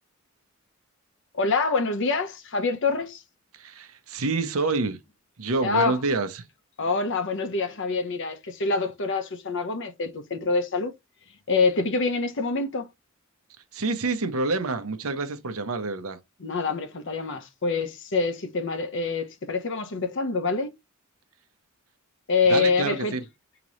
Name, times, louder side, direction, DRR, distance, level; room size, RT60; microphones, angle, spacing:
voice 1, 1.3-3.2 5.6-6.0 6.8-10.9 11.5-12.9 16.4-20.7 22.3-23.2, left 4 dB, 60° left, 0.8 m, -26 dB
voice 2, 3.5-5.0 5.4-6.4 13.7-16.2 22.5-23.2, right 3 dB, 75° right, 0.8 m, -27 dB
5.1 x 2.9 x 3.0 m
head